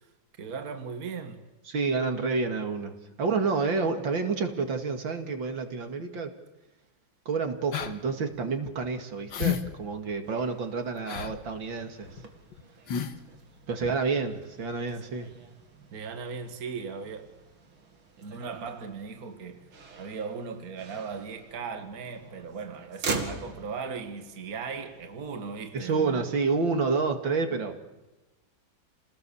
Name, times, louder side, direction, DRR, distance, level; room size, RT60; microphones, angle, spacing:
voice 1, 0.4-1.5 15.9-17.3 18.2-19.7 20.0-26.2, right 5 dB, 50° right, 2.1 m, -38 dB
voice 2, 1.7-6.3 7.3-12.1 13.7-15.3 25.7-27.8, right 4 dB, 70° right, 2.9 m, -29 dB
sound 1, 7.7-7.9 8.3-8.4 9.3-9.6 9.9-10.0 11.1-11.4 12.1-12.2 12.5-12.6 12.9-13.2 13.8-14.0, left 9 dB, 65° left, 2.1 m, -31 dB
Motor vehicle (road), 10.2-26.1, right 3 dB, 90° right, 3.3 m, -43 dB
29.0 x 19.5 x 7.0 m
omnidirectional pair, 2.2 m